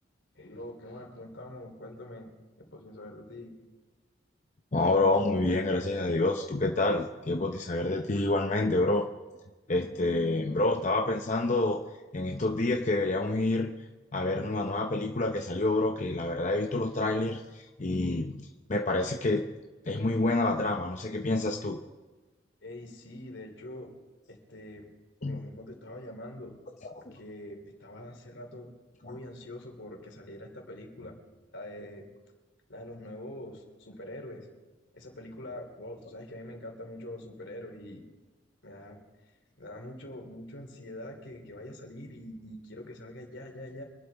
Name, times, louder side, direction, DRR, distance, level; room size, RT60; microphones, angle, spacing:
voice 1, 0.3-3.6 22.6-23.9 24.3-24.9 25.2-26.6 27.0-28.7 29.0-31.2 31.5-32.0 32.7-34.5 34.9-38.0 38.6-39.0 39.6-43.8, left 1 dB, 75° left, 2 dB, 3.0 m, -44 dB
voice 2, 4.7-9.0 9.7-11.8 12.1-13.7 14.1-18.4 18.7-19.5 19.9-21.8 25.2-25.4 26.8-27.2, left 2 dB, 40° left, 2 dB, 0.7 m, -28 dB
25.0 x 11.5 x 3.4 m, 1.2 s
head